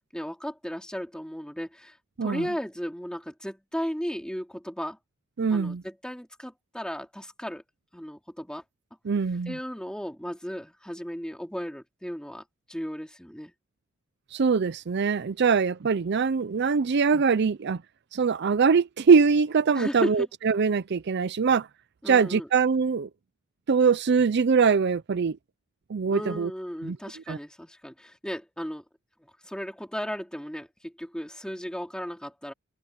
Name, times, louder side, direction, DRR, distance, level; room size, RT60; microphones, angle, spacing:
voice 1, 0.0-5.0 5.5-7.6 7.9-8.6 9.5-13.5 19.7-20.3 22.0-22.5 26.1-28.8 29.2-32.5, equal, 5° left, 2.5 m, -35 dB
voice 2, 5.4-5.8 9.1-9.6 14.3-17.8 18.1-21.7 22.1-23.1 23.7-25.4 25.9-26.5 26.8-27.0 27.3-27.4, right 5 dB, 55° right, 0.5 m, -23 dB
head